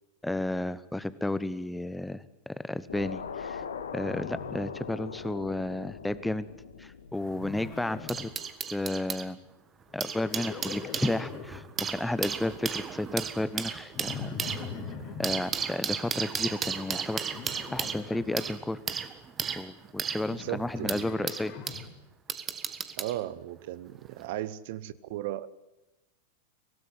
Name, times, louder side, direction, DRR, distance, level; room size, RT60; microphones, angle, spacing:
voice 1, 0.2-3.6 3.9-6.5 6.8-8.3 8.7-9.4 9.9-14.4 15.2-17.2 17.7-18.8 19.6-21.5, left 1 dB, 5° left, 16 dB, 1.0 m, -32 dB
sound 1, 2.9-8.2, left 6 dB, 70° left, 1.9 m, -41 dB
Livestock farm animals working animals, 4.0-5.2 5.5-6.0 7.3-8.3 9.9-11.6 13.9-15.3 17.3-18.4 20.2-21.9, left 6 dB, 35° left, 3.4 m, -42 dB
sound 2, 7.2-9.3 9.8-21.9 22.3-23.2 24.1-24.2, right 7 dB, 25° right, 1.6 m, -35 dB
voice 2, 20.3-21.2 23.0-25.5, right 14 dB, 50° right, 18 dB, 0.9 m, -36 dB
25.0 x 17.5 x 9.7 m, 1.0 s
figure-of-eight pair, 90°, 0 cm